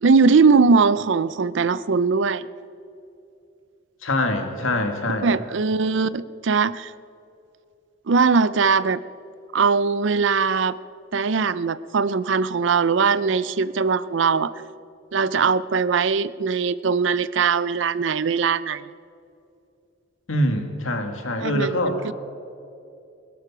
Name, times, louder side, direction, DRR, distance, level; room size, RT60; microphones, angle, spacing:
voice 1, 0.0-2.5 5.2-6.9 8.1-9.0 9.5-10.8 11.1-14.5 15.1-18.8 21.4-22.1, right 5 dB, 65° right, 17 dB, 0.5 m, -20 dB
voice 2, 4.0-5.3 20.3-22.1, left 1 dB, 90° left, 5 dB, 2.0 m, -24 dB
20.5 x 11.5 x 6.0 m, 2.6 s
head